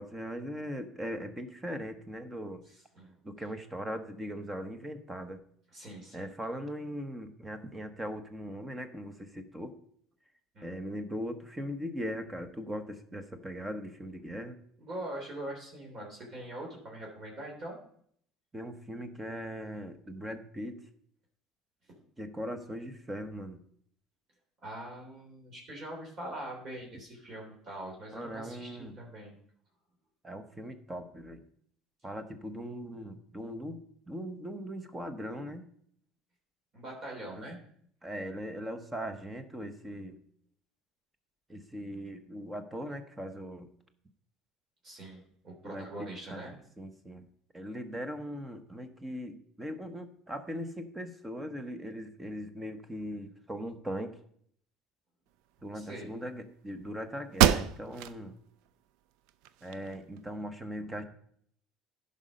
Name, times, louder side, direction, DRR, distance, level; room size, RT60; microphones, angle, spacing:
voice 1, 0.0-2.6 3.2-5.4 6.1-9.7 10.6-14.6 18.5-20.8 22.2-23.6 28.1-29.0 30.2-31.4 32.0-33.8 34.1-35.7 37.4-37.5 38.0-40.2 41.5-43.7 45.6-47.3 47.5-54.2 55.6-58.3 59.6-61.0, equal, 15° right, 8 dB, 1.1 m, -39 dB
voice 2, 2.7-3.1 5.7-6.3 10.5-10.7 14.8-17.8 21.9-22.0 24.6-29.4 36.7-37.6 44.8-46.5 55.7-56.1, right 1 dB, 45° right, -1 dB, 3.4 m, -43 dB
sound 1, 56.8-56.9 57.3-58.2 58.7-58.8 59.3-60.2, right 11 dB, 75° right, 0.4 m, -27 dB
11.0 x 5.4 x 5.2 m, 0.65 s
supercardioid pair, 90°, 0 cm